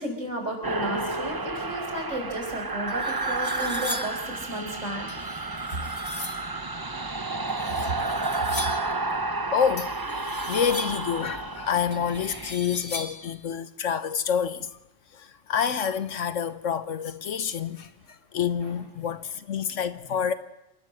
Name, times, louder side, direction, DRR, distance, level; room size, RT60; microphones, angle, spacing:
voice 1, 0.0-5.1 6.5-6.6 18.6-18.7, right 1 dB, 85° right, 5.1 m, -33 dB
sound 1, 0.6-12.5, right 3 dB, 20° right, 0.7 m, -31 dB
sound 2, 2.9-4.3 5.1-6.5 7.5-8.9 9.8-11.1 11.9-13.3, left 3 dB, 55° left, 2.7 m, -38 dB
voice 2, 9.5-14.7 15.1-17.9 18.3-20.3, left 7 dB, 85° left, 1.4 m, -28 dB
27.5 x 12.5 x 7.8 m
omnidirectional pair, 1.3 m